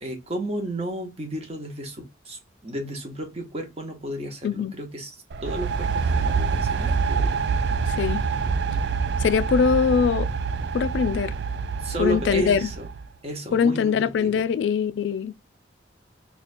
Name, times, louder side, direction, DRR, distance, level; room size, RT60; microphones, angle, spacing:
voice 1, 0.0-7.4 11.8-12.9 13.2-14.4, right 1 dB, 35° right, 1.0 m, -33 dB
sound 1, 5.3-13.1, right 5 dB, 65° right, 0.4 m, -26 dB
voice 2, 7.9-8.2 9.2-10.3 10.7-11.3 12.0-12.7 13.5-15.3, left 6 dB, 80° left, 0.3 m, -22 dB
2.8 x 2.3 x 4.2 m
head